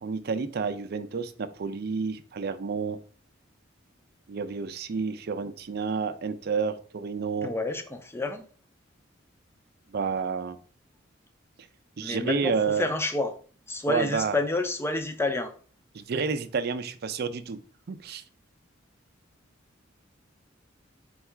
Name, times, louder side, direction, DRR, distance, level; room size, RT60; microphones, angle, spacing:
voice 1, 0.0-3.0 4.3-7.5 9.9-10.6 12.0-12.9 13.9-14.4 15.9-17.6 17.9-18.2, right 5 dB, 55° right, 0.4 m, -30 dB
voice 2, 7.4-8.4 12.0-13.3 13.7-15.5, left 2 dB, 15° left, 0.5 m, -29 dB
4.5 x 2.4 x 4.4 m
head